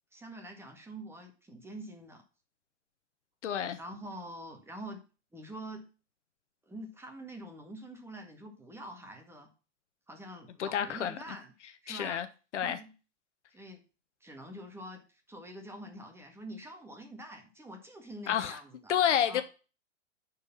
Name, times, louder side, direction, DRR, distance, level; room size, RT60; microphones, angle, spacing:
voice 1, 0.1-2.2 3.8-5.0 5.3-5.9 6.7-9.5 10.1-11.5 11.8-12.3 12.6-12.9 13.5-13.8 14.2-15.0 15.3-19.0 19.3-19.4, right 1 dB, 5° right, 1.8 m, -45 dB
voice 2, 3.4-3.8 10.6-11.2 11.9-12.3 12.5-12.8 18.3-18.6 18.9-19.4, left 9 dB, 70° left, 1.2 m, -29 dB
9.9 x 4.7 x 5.6 m
hypercardioid pair, 130°, 36 cm